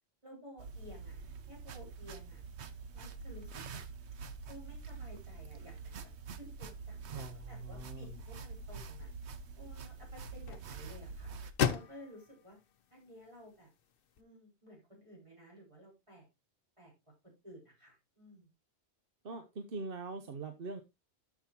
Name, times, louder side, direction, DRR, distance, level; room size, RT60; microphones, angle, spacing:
voice 1, 0.2-1.2 1.5-2.4 2.9-3.8 4.5-5.8 6.4-9.1 9.5-11.3 11.7-12.6 12.9-13.7 14.2-16.3 16.8-16.9 17.4-18.5, equal, 25° right, -3 dB, 5.1 m, -54 dB
sound 1, 0.6-11.5, right 4 dB, 75° right, 1.1 m, -46 dB
voice 2, 7.1-8.2 19.2-20.8, right 3 dB, 55° right, 8 dB, 1.0 m, -43 dB
sound 2, 8.0-14.2, left 7 dB, 60° left, 0.8 m, -40 dB
12.5 x 6.1 x 2.8 m, 0.23 s
omnidirectional pair, 1.2 m